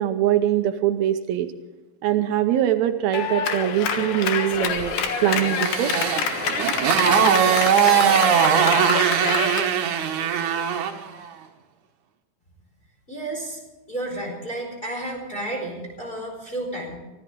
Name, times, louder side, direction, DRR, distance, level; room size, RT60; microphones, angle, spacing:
voice 1, 0.0-1.5 2.0-5.0 5.2-5.9, right 11 dB, 90° right, 8 dB, 1.5 m, -22 dB
Clapping, 3.1-9.7, left 6 dB, 75° left, 3.2 m, -26 dB
Motorcycle, 5.0-11.0, right 8 dB, 65° right, 2.5 m, -21 dB
voice 2, 13.1-13.6 13.9-17.0, right 1 dB, 15° left, -2 dB, 4.4 m, -31 dB
24.0 x 14.5 x 3.8 m, 1.2 s
omnidirectional pair, 4.2 m